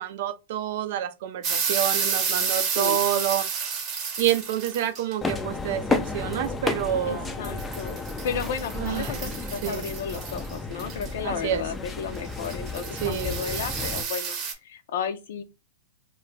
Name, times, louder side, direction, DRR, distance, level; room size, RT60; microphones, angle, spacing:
voice 1, 0.0-3.5 4.2-7.3 8.8-9.2 9.6-9.9 11.2-11.6 13.0-13.4, right 11 dB, 60° right, 0.4 m, -28 dB
sound 1, 1.4-5.1 7.4-11.1 12.2-14.5, right 6 dB, 35° right, 0.8 m, -30 dB
sound 2, 5.2-14.0, left 3 dB, 10° left, 0.4 m, -32 dB
voice 2, 7.1-15.4, left 7 dB, 70° left, 0.5 m, -33 dB
2.3 x 2.1 x 3.7 m
hypercardioid pair, 125°, 0 cm